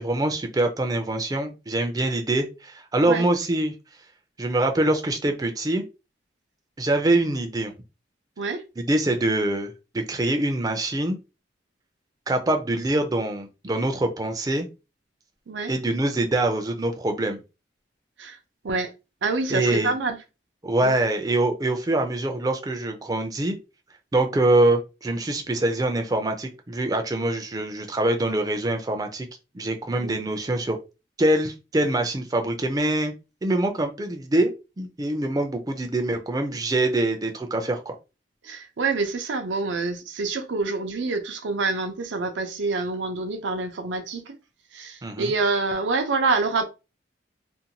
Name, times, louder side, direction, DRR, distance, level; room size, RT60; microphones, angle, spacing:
voice 1, 0.0-4.1 4.4-5.8 6.8-7.7 8.8-11.2 12.3-14.7 15.7-17.4 19.5-19.9 20.6-23.6 24.1-29.3 29.5-30.8 31.2-33.1 33.4-37.9 45.0-45.3, right 1 dB, 20° right, 0.4 m, -24 dB
voice 2, 19.2-20.2 20.8-21.0 30.0-30.1 38.4-44.3 44.7-46.6, right 3 dB, 90° right, 0.5 m, -26 dB
2.6 x 2.2 x 2.8 m
head